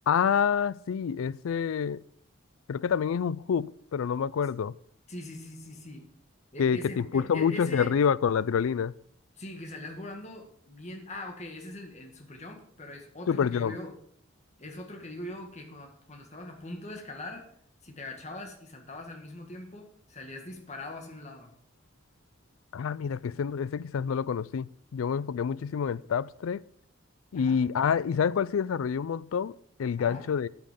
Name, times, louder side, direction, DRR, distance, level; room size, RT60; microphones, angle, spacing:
voice 1, 0.1-2.0 2.7-4.7 6.6-8.9 13.3-13.8 22.7-26.6 27.3-30.5, left 7 dB, 80° left, 0.4 m, -27 dB
voice 2, 5.1-6.1 6.5-7.9 9.4-14.0 14.6-17.4 17.8-21.5 27.3-27.6 30.0-30.3, left 1 dB, 35° left, 1.9 m, -42 dB
9.8 x 8.8 x 5.2 m
head